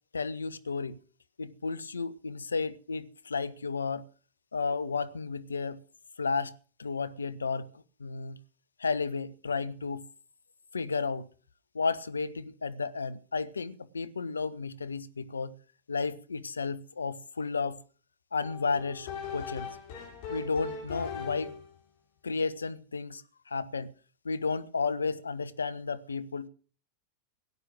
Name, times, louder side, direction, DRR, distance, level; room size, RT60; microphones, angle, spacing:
voice 1, 0.1-1.0 1.4-4.0 4.5-5.8 6.2-6.5 6.8-7.7 8.0-8.4 8.8-10.0 10.7-11.3 11.7-15.5 15.9-17.8 18.3-19.8 20.3-21.5 22.2-23.9 24.2-26.5, left 4 dB, 75° left, 1.1 m, -33 dB
sound 1, 18.4-21.8, left 6 dB, 50° left, 6.7 m, -39 dB
17.5 x 10.0 x 6.2 m
figure-of-eight pair, 90°, 0 cm